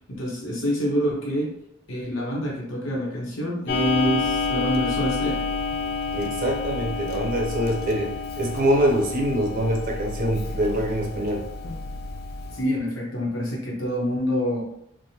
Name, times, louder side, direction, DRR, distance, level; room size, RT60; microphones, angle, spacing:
voice 1, 0.1-1.6 1.9-5.4 12.5-14.6, equal, 80° left, -2 dB, 0.9 m, -26 dB
Clock, 3.7-12.6, left 4 dB, 50° left, 0.3 m, -29 dB
voice 2, 6.1-8.1 8.4-11.4, right 1 dB, 45° right, 0 dB, 0.6 m, -24 dB
3.3 x 2.1 x 2.8 m, 0.74 s
head